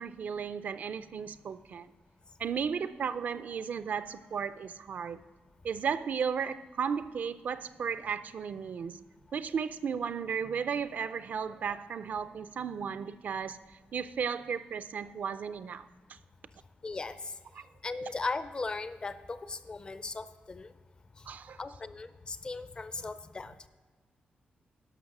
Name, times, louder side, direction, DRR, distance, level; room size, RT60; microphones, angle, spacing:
voice 1, 0.0-1.9 2.4-5.2 5.6-9.0 9.3-16.2 17.6-17.7 21.3-21.6, right 6 dB, 55° right, 13 dB, 0.4 m, -35 dB
voice 2, 16.8-17.3 17.8-20.7 21.2-21.3 21.6-23.7, left 3 dB, 30° left, 13 dB, 0.4 m, -38 dB
11.5 x 6.0 x 5.9 m, 1.4 s
wide cardioid pair, 155°, 3 cm